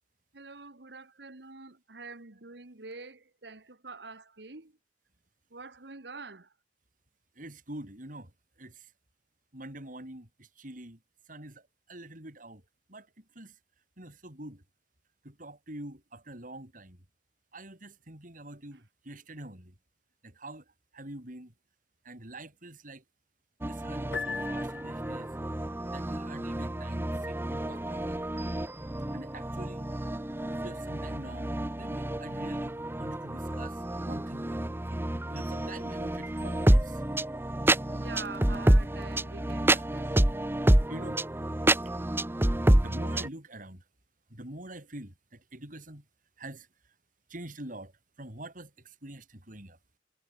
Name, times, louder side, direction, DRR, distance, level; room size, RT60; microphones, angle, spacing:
voice 1, 0.3-4.7 5.5-6.5 37.8-40.1, right 4 dB, 70° right, 1.7 m, -45 dB
voice 2, 7.4-8.3 8.6-8.9 9.5-11.0 11.3-12.6 12.9-13.1 13.4-13.5 14.0-14.6 15.2-17.0 17.5-19.7 20.2-20.6 20.9-21.5 22.0-23.0 23.7-25.3 25.9-28.3 29.1-29.9 30.5-31.5 31.8-35.0 35.3-37.0 39.7-39.8 40.9-41.2 42.7-43.8 44.3-46.0 46.4-46.7 47.3-47.9 48.2-49.8, right 1 dB, 50° right, 5.8 m, -45 dB
sound 1, 23.6-43.3, right 1 dB, 15° right, 0.7 m, -28 dB
Piano, 24.1-25.4, left 5 dB, 80° left, 3.9 m, -38 dB
head